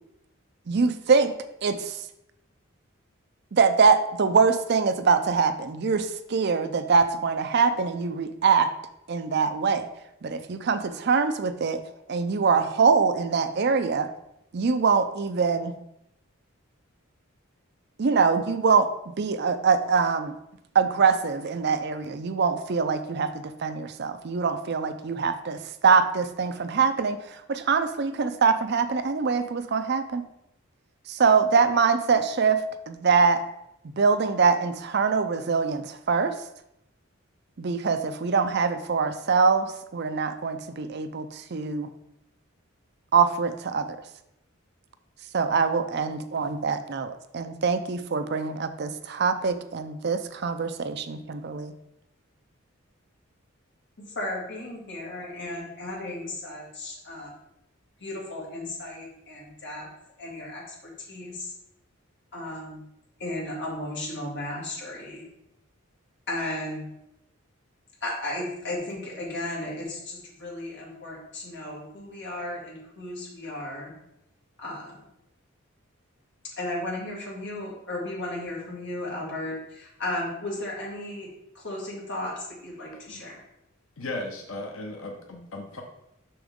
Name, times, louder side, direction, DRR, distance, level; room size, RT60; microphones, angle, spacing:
voice 1, 0.7-1.3 1.6-2.0 3.5-8.7 9.1-9.9 10.2-11.8 12.1-14.1 14.5-15.7 18.0-18.9 19.2-20.3 20.7-30.2 31.1-33.4 34.0-36.3 37.6-41.9 43.1-44.0 45.3-51.7, right 5 dB, 50° right, 10 dB, 0.5 m, -23 dB
voice 2, 54.0-57.3 58.0-59.9 60.2-60.7 61.1-61.5 62.3-62.8 63.2-65.3 66.3-66.9 68.0-73.9 74.6-75.0 76.6-81.3 81.5-83.4, left 1 dB, 55° left, -4 dB, 2.4 m, -35 dB
voice 3, 82.9-83.2 84.0-85.8, left 2 dB, 80° left, 3 dB, 0.9 m, -36 dB
7.0 x 6.1 x 3.7 m, 0.83 s
head